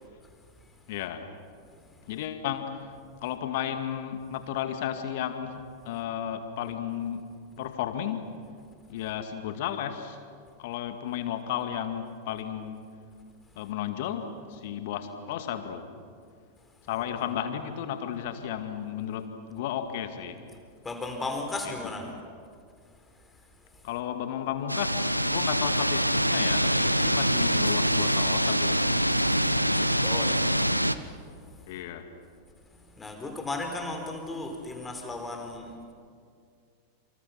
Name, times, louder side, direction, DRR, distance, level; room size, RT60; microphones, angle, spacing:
voice 1, 0.9-1.3 2.1-2.9 3.2-7.2 7.6-8.3 8.9-10.2 10.6-12.9 13.6-15.9 16.9-20.4 21.6-22.2 23.8-28.9 31.7-32.1, left 9 dB, 50° left, 8 dB, 2.2 m, -33 dB
voice 2, 17.0-17.3 20.8-22.1 29.2-30.7 31.0-31.2 33.0-35.7, left 2 dB, 15° left, 4 dB, 4.4 m, -36 dB
sound 1, 24.7-31.0, equal, 90° right, 0.8 m, -25 dB
28.0 x 27.5 x 6.1 m, 2.2 s
figure-of-eight pair, 90°, 0 cm